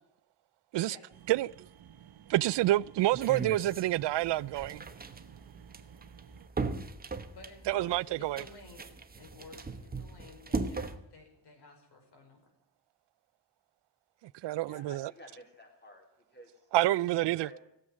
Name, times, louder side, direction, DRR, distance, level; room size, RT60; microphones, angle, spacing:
sound 1, 1.1-6.5, right 10 dB, 60° right, 1.0 m, -55 dB
voice 1, 2.3-4.8 7.7-8.4 14.4-15.1 16.7-17.5, right 15 dB, 80° right, 0.5 m, -28 dB
sound 2, 3.1-11.0, right 4 dB, 20° right, 1.1 m, -39 dB
voice 2, 7.3-8.9 9.2-12.4, left 3 dB, 70° left, 5.3 m, -53 dB
voice 3, 14.6-16.1 16.3-16.7 17.3-17.6, equal, 25° left, 4.1 m, -52 dB
17.0 x 7.9 x 10.0 m
wide cardioid pair, 140°, 41 cm